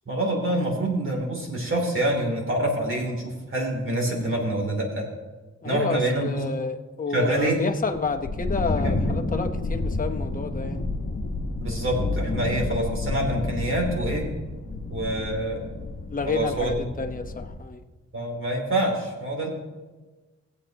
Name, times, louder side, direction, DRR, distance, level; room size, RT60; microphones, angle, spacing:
voice 1, 0.1-5.0 5.6-6.4 7.1-7.6 8.8-9.1 11.6-14.3 14.9-15.6 16.3-16.9 18.1-19.5, right 1 dB, 45° right, -1 dB, 3.0 m, -26 dB
voice 2, 5.6-10.8 16.1-17.8, left 4 dB, 30° left, 4 dB, 0.9 m, -30 dB
sound 1, 7.9-17.6, left 2 dB, 45° left, 1.4 m, -30 dB
18.5 x 7.9 x 2.9 m, 1.3 s
wide cardioid pair, 125°, 30 cm